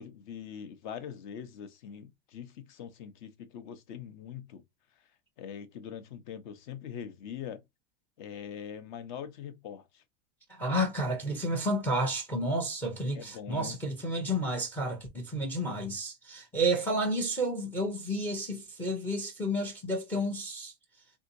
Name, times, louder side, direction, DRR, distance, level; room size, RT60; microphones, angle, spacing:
voice 1, 0.0-4.6 5.4-7.6 8.2-10.0 13.1-13.8, left 8 dB, 50° left, 0.8 m, -42 dB
voice 2, 10.6-20.7, right 1 dB, 5° left, 0.5 m, -31 dB
3.5 x 2.7 x 2.6 m
supercardioid pair, 170°, 30 cm